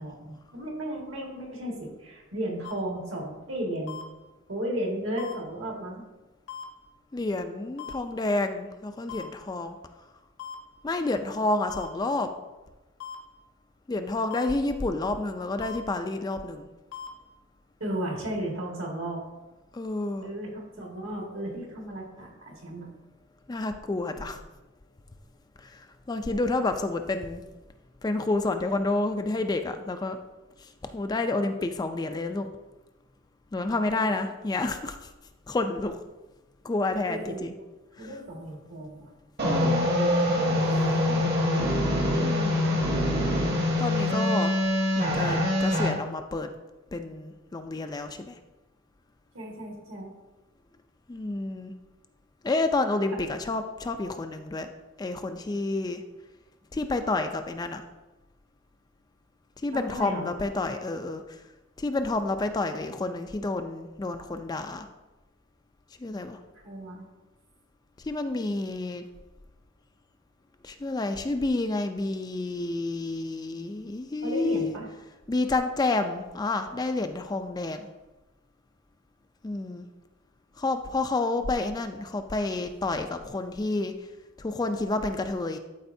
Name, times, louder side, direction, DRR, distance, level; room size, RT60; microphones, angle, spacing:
voice 1, 0.0-4.0 4.5-6.0 17.8-19.2 20.2-22.9 33.9-34.3 37.1-37.5 38.0-39.1 39.5-41.8 42.1-42.5 49.3-50.1 53.1-53.2 59.7-60.3 66.5-67.0 74.2-74.9, right 1 dB, 70° right, -1 dB, 1.8 m, -35 dB
sound 1, 2.6-2.7 3.9-4.0 5.2-5.3 6.5-6.6 7.8-7.9 9.1-9.2 10.4-10.5 11.7-11.9 13.0-13.1 14.3-14.4 15.6-15.8 16.9-17.1, left 8 dB, 80° left, 1.2 m, -38 dB
voice 2, 7.1-9.8 10.8-12.3 13.9-16.7 19.7-20.3 23.5-24.4 25.6-27.4 28.0-30.2 30.6-32.5 33.5-35.1 35.5-36.0 36.6-37.5 38.0-38.1 39.4-39.9 42.2-42.8 43.8-44.5 45.0-46.5 46.9-48.3 51.1-51.7 52.4-54.7 55.0-56.0 56.7-57.8 59.6-61.4 61.8-64.9 66.0-66.4 68.0-69.0 70.6-74.7 75.3-77.9 79.4-79.9 80.6-83.9 84.4-85.6, left 2 dB, 20° left, 7 dB, 0.3 m, -29 dB
sound 2, 39.4-45.9, left 1 dB, 55° right, 1.3 m, -24 dB
12.5 x 4.3 x 2.7 m, 1.1 s
head